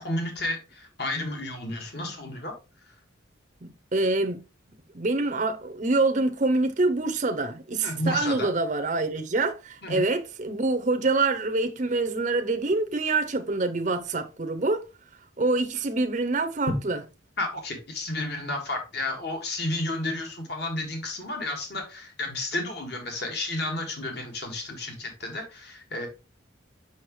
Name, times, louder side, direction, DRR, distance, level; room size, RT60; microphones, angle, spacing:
voice 1, 0.0-2.5 7.8-8.5 9.8-10.0 16.7-16.8 17.4-26.1, left 2 dB, 55° left, 1.7 m, -32 dB
voice 2, 3.9-4.4 4.9-14.8 15.4-17.0, right 3 dB, 40° right, 0.6 m, -25 dB
6.2 x 5.8 x 3.0 m
head